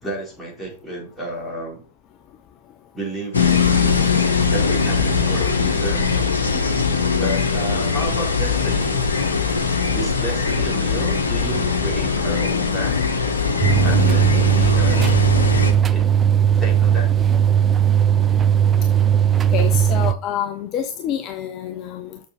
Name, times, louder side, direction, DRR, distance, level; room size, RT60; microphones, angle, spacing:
voice 1, 0.0-1.8 2.9-3.7 4.5-6.2 6.5-6.6 7.2-8.9 9.9-13.0 13.8-15.1 15.9-16.1 16.6-17.1, right 1 dB, 10° left, -4 dB, 4.3 m, -31 dB
sound 1, 3.3-15.7, left 5 dB, 75° left, 1.2 m, -21 dB
sound 2, 13.6-20.1, right 9 dB, 20° right, 0.5 m, -17 dB
voice 2, 19.5-22.2, left 9 dB, 35° left, 7 dB, 0.8 m, -27 dB
7.0 x 6.6 x 4.3 m, 0.39 s
figure-of-eight pair, 90°, 0 cm